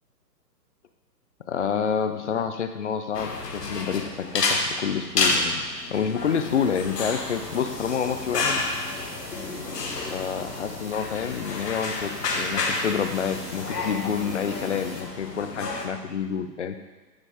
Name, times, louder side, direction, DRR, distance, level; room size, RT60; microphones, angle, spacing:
voice 1, 1.5-5.6 5.9-8.6 10.1-16.8, left 7 dB, 45° left, 8 dB, 0.5 m, -28 dB
sound 1, 3.1-15.9, left 3 dB, 70° left, 1.2 m, -30 dB
sound 2, 6.2-15.0, right 3 dB, 55° right, 1.6 m, -45 dB
9.8 x 4.1 x 3.5 m, 1.3 s
figure-of-eight pair, 130°, 49 cm